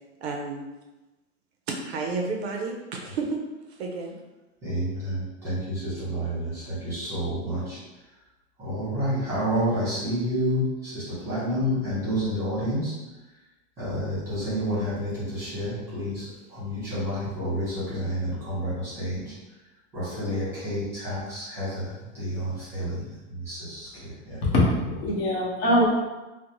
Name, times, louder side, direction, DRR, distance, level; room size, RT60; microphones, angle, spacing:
voice 1, 0.2-0.6 1.7-3.4 3.7-4.2, right 4 dB, 60° right, 1 dB, 0.5 m, -31 dB
voice 2, 4.6-7.8 8.6-12.9 13.8-19.2 19.9-24.4, equal, 5° right, -12 dB, 1.0 m, -29 dB
voice 3, 24.4-25.8, left 1 dB, 55° left, -5 dB, 0.8 m, -22 dB
2.5 x 2.0 x 2.8 m, 1.1 s
supercardioid pair, 175°, 36 cm